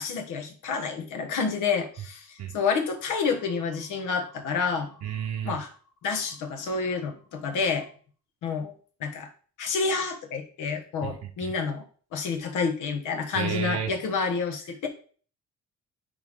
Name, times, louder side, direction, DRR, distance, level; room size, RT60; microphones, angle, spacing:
voice 1, 0.0-4.9 5.4-5.7 6.0-7.9 8.4-8.7 9.0-9.3 9.6-11.8 12.1-14.9, left 5 dB, 85° left, 5 dB, 1.4 m, -29 dB
voice 2, 5.0-5.6 11.0-11.5 13.3-13.9, right 8 dB, 60° right, 3 dB, 0.9 m, -32 dB
10.0 x 3.5 x 3.7 m, 0.42 s
cardioid pair, 90°, 30 cm